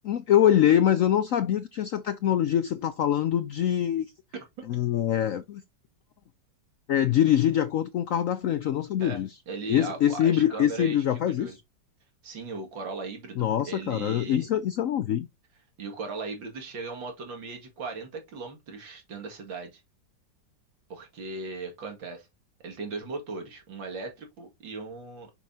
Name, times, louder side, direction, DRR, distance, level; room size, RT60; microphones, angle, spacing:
voice 1, 0.0-4.1 4.6-5.6 6.9-9.3 9.7-11.6 13.4-15.3, left 10 dB, 80° left, 0.7 m, -24 dB
voice 2, 9.0-11.5 12.2-14.5 15.8-19.8 20.9-22.3 22.6-25.3, right 4 dB, 85° right, 2.7 m, -38 dB
6.9 x 6.2 x 2.7 m
omnidirectional pair, 2.0 m